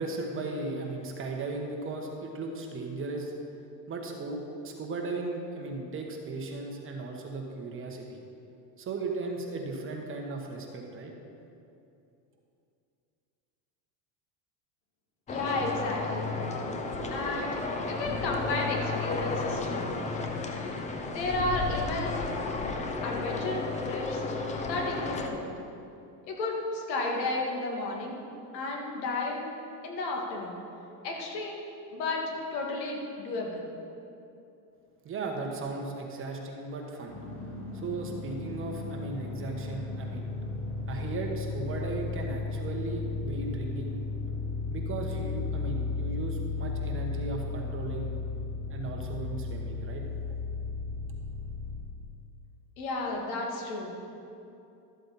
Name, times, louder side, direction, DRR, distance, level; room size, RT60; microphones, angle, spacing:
voice 1, 0.0-3.3 3.9-8.2 8.8-11.1 35.0-37.2 37.7-40.3 40.9-44.0 44.7-48.1 48.7-50.0, right 3 dB, 25° right, 1 dB, 1.3 m, -36 dB
voice 2, 15.3-16.3 17.1-17.6 17.9-19.9 21.1-22.3 23.0-24.2 24.7-25.5 26.2-28.2 28.5-29.5 29.8-30.6 31.0-31.6 31.9-33.6 52.8-53.9, left 2 dB, 80° left, -1 dB, 2.3 m, -32 dB
sound 1, 15.3-25.3, left 3 dB, 15° left, 0.5 m, -33 dB
sound 2, 37.1-51.8, left 4 dB, 30° left, 2.4 m, -35 dB
13.0 x 7.8 x 4.2 m, 2.7 s
supercardioid pair, 135°, 50 cm